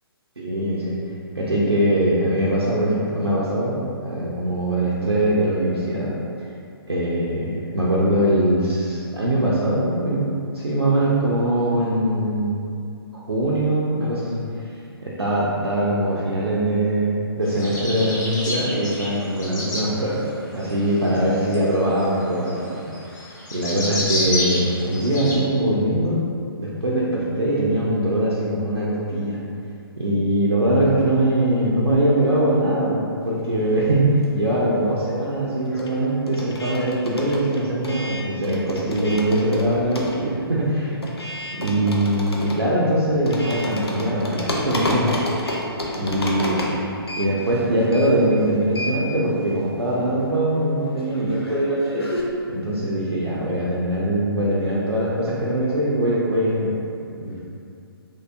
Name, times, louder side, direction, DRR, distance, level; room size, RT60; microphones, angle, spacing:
voice 1, 0.4-1.0 1.3-6.1 6.9-10.3 10.5-12.6 13.1-14.4 15.0-20.2 20.5-22.8 23.5-26.2 26.6-29.4 30.0-41.0 41.6-45.1 46.0-46.6 47.2-52.1 52.5-56.8 57.2-57.4, right 1 dB, 80° right, -6 dB, 0.5 m, -22 dB
sound 1, 17.5-19.9 20.6-25.4, left 1 dB, 45° left, 0.8 m, -29 dB
sound 2, 33.4-34.6 34.9-52.2, left 1 dB, 75° left, 0.5 m, -31 dB
3.1 x 2.7 x 2.4 m, 2.5 s
figure-of-eight pair, 130°, 13 cm